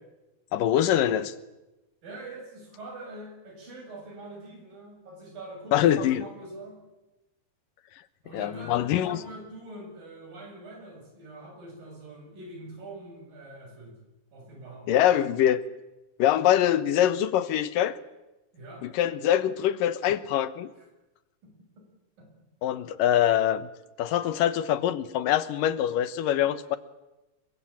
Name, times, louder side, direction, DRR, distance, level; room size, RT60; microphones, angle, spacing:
voice 1, 0.5-1.3 5.7-6.2 8.3-9.2 14.9-15.6 16.2-18.0 18.8-20.7 22.6-23.7 24.0-26.8, left 11 dB, 80° left, 2.8 m, -24 dB
voice 2, 2.0-6.8 8.2-14.0 14.3-15.0 18.5-18.9 20.8-20.9 21.4-21.5 22.2-22.3 24.2-24.3, right 2 dB, 80° right, 9.3 m, -44 dB
27.0 x 23.0 x 8.8 m
omnidirectional pair, 3.9 m